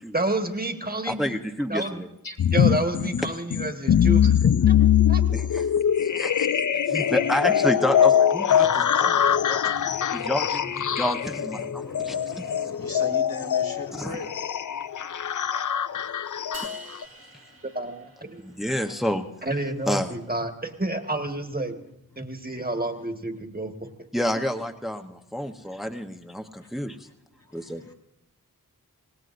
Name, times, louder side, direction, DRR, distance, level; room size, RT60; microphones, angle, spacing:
voice 1, 0.1-1.3 1.7-1.9 2.5-4.2 5.1-5.2 17.7-18.4 19.4-21.8 22.2-23.7, right 2 dB, 25° right, 5 dB, 1.5 m, -29 dB
voice 2, 1.1-1.8 5.3-6.5 6.9-9.6 10.1-12.7 14.0-14.2 16.6-16.7 18.4-19.3 19.9-20.1 24.1-27.0 27.5-27.8, left 1 dB, ahead, 5 dB, 0.9 m, -29 dB
sound 1, 2.4-17.0, left 9 dB, 60° left, 0.5 m, -22 dB
voice 3, 8.6-9.4 9.7-10.5 10.8-14.3, left 2 dB, 75° left, 1 dB, 2.3 m, -40 dB
sound 2, 16.5-18.8, right 1 dB, 90° right, 1.3 m, -44 dB
25.0 x 18.5 x 2.6 m, 0.86 s
wide cardioid pair, 45°, 35 cm